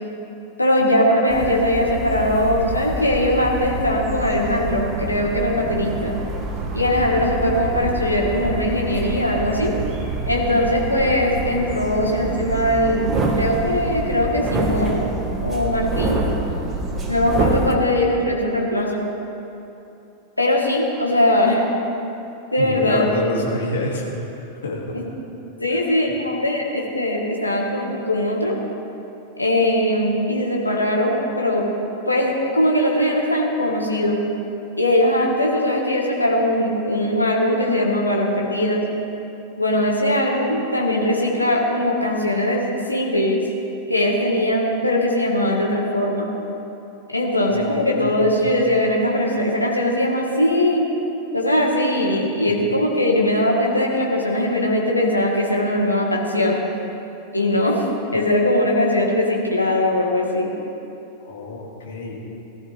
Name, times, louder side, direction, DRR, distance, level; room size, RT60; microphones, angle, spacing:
voice 1, 0.6-6.2 6.7-9.7 10.3-13.1 13.4-15.1 15.4-16.2 17.1-19.0 20.4-21.7 22.5-23.1 24.9-25.1 25.6-28.5 29.4-31.7 32.1-34.2 34.8-38.8 39.6-43.4 43.9-46.3 47.1-50.8 51.3-56.6 57.3-57.9 58.1-60.5, left 1 dB, 85° left, -1 dB, 1.9 m, -20 dB
sound 1, 1.3-17.7, right 2 dB, 25° right, 1.7 m, -27 dB
voice 2, 22.6-25.0 25.7-25.8 47.5-48.6 61.2-62.1, left 2 dB, 60° left, -2 dB, 2.6 m, -28 dB
18.5 x 12.5 x 3.6 m, 2.9 s
figure-of-eight pair, 90°, 0 cm